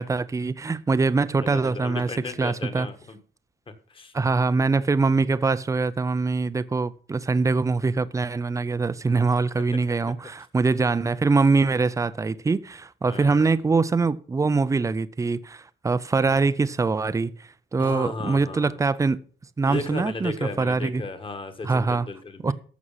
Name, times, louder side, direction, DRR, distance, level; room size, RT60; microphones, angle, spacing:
voice 1, 0.0-2.1 2.4-2.9 4.1-19.2 19.6-21.0 21.6-22.1 22.4-22.5, right 4 dB, 15° right, 0.5 m, -23 dB
voice 2, 1.4-3.2 3.9-4.1 13.1-13.6 16.2-16.4 17.8-18.8 19.6-22.5, left 3 dB, 25° left, 1.5 m, -35 dB
14.0 x 6.3 x 5.6 m
cardioid pair, 160°, 20 cm